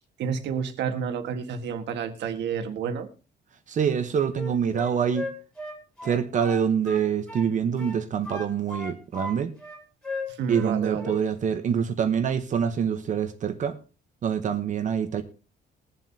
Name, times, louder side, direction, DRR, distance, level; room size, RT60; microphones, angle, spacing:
voice 1, 0.2-3.1 10.3-11.2, right 6 dB, 85° right, 1.6 m, -30 dB
voice 2, 3.7-5.3 6.0-9.5 10.5-13.8 14.2-15.2, right 7 dB, 45° right, 0.9 m, -25 dB
Wind instrument woodwind instrument, 4.3-7.5 7.8-9.3 9.6-10.7 11.0-11.3, left 2 dB, 5° left, 3.0 m, -36 dB
21.5 x 7.5 x 2.8 m
cardioid pair, 170°, 18 cm